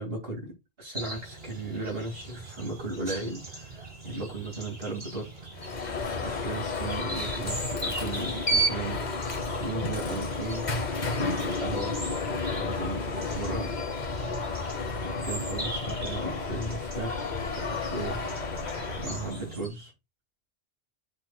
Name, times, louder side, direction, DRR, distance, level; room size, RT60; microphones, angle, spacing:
voice 1, 0.0-5.3 6.2-10.7 11.2-12.0 12.5-13.8 15.0-18.2 19.0-19.9, right 2 dB, 65° right, 2.6 m, -36 dB
sound 1, 0.9-19.7, right 1 dB, 40° right, 5.0 m, -41 dB
Alarm, 5.5-19.5, left 2 dB, 45° left, 1.1 m, -31 dB
12.0 x 4.2 x 2.3 m
omnidirectional pair, 1.1 m